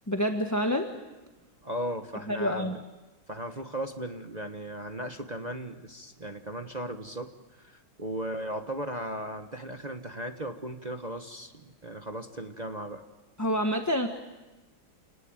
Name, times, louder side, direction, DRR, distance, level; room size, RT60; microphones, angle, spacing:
voice 1, 0.1-0.9 2.3-2.8 13.4-14.1, equal, 10° left, 4 dB, 1.2 m, -27 dB
voice 2, 1.6-2.8 3.3-13.0, right 1 dB, 25° right, 5 dB, 1.0 m, -37 dB
30.0 x 19.5 x 9.0 m, 1.1 s
omnidirectional pair, 2.1 m